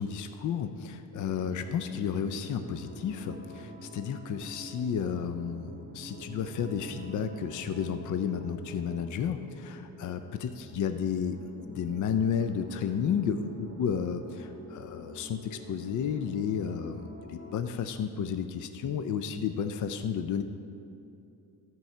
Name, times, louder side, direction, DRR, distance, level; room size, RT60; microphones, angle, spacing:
voice 1, 0.0-11.4 11.7-20.4, left 7 dB, 55° left, 8 dB, 0.5 m, -32 dB
sound 1, 1.2-17.6, equal, 30° right, 1.5 m, -47 dB
13.5 x 4.6 x 5.5 m, 2.7 s
cardioid pair, 95°, 36 cm